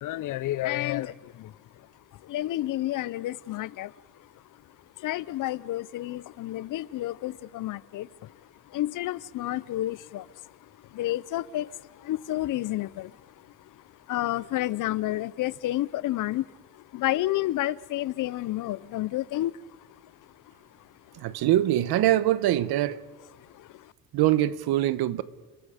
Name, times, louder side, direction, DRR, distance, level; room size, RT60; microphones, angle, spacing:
voice 1, 0.0-1.9 2.1-3.9 4.2-4.3 5.0-8.4 8.7-10.6 10.9-20.1 23.4-23.9, left 15 dB, 60° left, 0.6 m, -31 dB
voice 2, 21.1-23.0 24.1-25.2, right 13 dB, 85° right, 1.0 m, -23 dB
30.0 x 19.5 x 5.0 m
cardioid pair, 170°, 37 cm